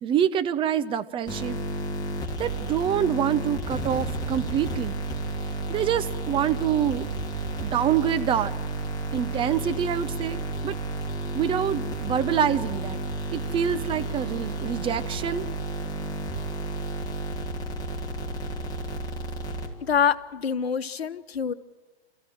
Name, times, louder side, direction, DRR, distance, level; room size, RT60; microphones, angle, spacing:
voice 1, 0.0-1.6 2.4-5.0 5.7-7.1 7.6-8.5 9.1-10.8 11.3-13.0 13.3-15.5, right 9 dB, 15° right, 11 dB, 0.8 m, -26 dB
sound 1, 1.3-20.0, right 2 dB, 10° left, 3.0 m, -32 dB
voice 2, 19.8-21.5, left 7 dB, 65° left, 8 dB, 1.3 m, -25 dB
29.0 x 14.5 x 9.0 m, 1.3 s
figure-of-eight pair, 115°, 32 cm